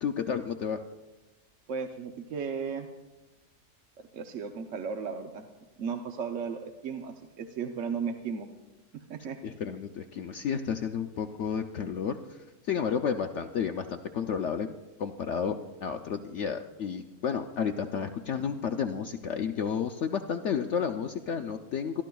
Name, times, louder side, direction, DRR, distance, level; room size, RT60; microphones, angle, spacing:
voice 1, 0.0-0.8 9.4-12.4 12.6-14.7 15.0-22.0, left 7 dB, 70° left, 6 dB, 0.7 m, -31 dB
voice 2, 1.7-2.9 4.1-5.5 5.8-8.5 8.9-9.4, right 6 dB, 60° right, 4 dB, 0.9 m, -35 dB
26.0 x 12.5 x 2.3 m, 1.1 s
omnidirectional pair, 1.7 m